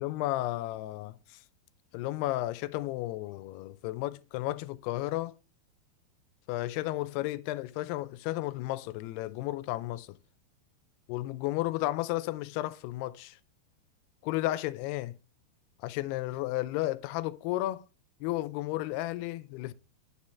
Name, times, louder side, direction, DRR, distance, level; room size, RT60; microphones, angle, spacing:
voice 1, 0.0-1.4 1.9-5.3 6.5-10.1 11.1-13.4 14.2-15.2 15.8-17.8 18.2-19.7, left 16 dB, 85° left, 2.6 m, -33 dB
12.5 x 4.9 x 4.2 m
omnidirectional pair, 4.7 m